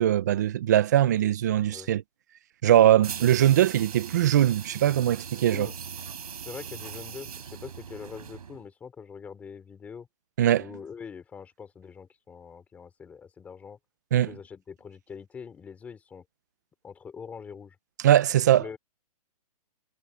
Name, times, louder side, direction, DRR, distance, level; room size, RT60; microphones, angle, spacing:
voice 1, 0.0-2.0 2.6-5.7 10.4-10.6 14.1-14.3 18.0-18.8, right 12 dB, 30° right, 0.6 m, -21 dB
sound 1, 3.0-8.6, right 7 dB, 70° right, 6.3 m, -40 dB
voice 2, 6.4-10.1 10.5-13.8 14.2-16.2 16.8-17.8 18.5-18.8, left 6 dB, 5° left, 3.5 m, -43 dB
hypercardioid pair, 175°, 20 cm